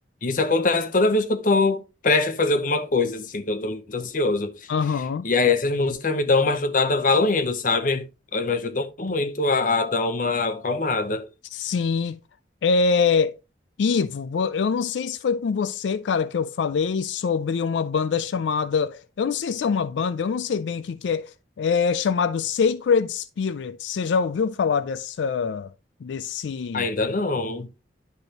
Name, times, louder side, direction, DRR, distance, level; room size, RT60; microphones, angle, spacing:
voice 1, 0.2-4.7 5.2-8.0 8.3-11.3 26.7-27.7, left 3 dB, 50° left, 0.8 m, -23 dB
voice 2, 4.7-5.3 11.5-12.2 12.6-13.3 13.8-25.7 26.0-26.9, left 5 dB, 85° left, 0.4 m, -24 dB
10.5 x 5.4 x 2.9 m
head